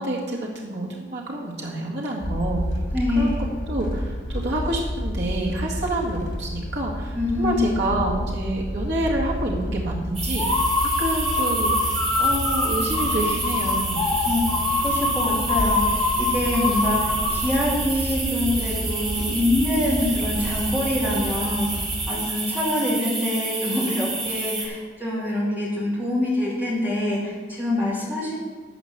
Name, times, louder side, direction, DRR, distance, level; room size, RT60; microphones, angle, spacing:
voice 1, 0.0-2.7 3.2-14.1, right 1 dB, 70° right, -3 dB, 1.9 m, -28 dB
sound 1, 2.2-22.1, equal, 85° left, 2.6 m, -31 dB
voice 2, 2.9-3.4 7.1-7.7 14.2-15.9 16.2-21.7 22.1-28.3, left 1 dB, 10° right, -6 dB, 2.7 m, -25 dB
sound 2, 10.1-24.7, right 3 dB, 35° right, 2.5 m, -30 dB
sound 3, 10.3-17.6, left 3 dB, 20° left, 1.5 m, -24 dB
13.0 x 5.1 x 7.3 m, 1.4 s
head